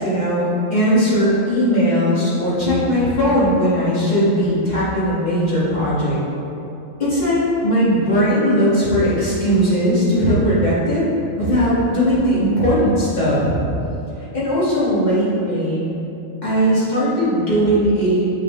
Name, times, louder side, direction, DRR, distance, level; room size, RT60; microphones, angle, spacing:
voice 1, 0.0-6.2 7.0-7.4 7.6-11.0 11.4-13.6 14.3-15.8 16.4-18.4, equal, 35° left, -10 dB, 1.3 m, -18 dB
6.1 x 2.4 x 3.5 m, 2.9 s
omnidirectional pair, 1.5 m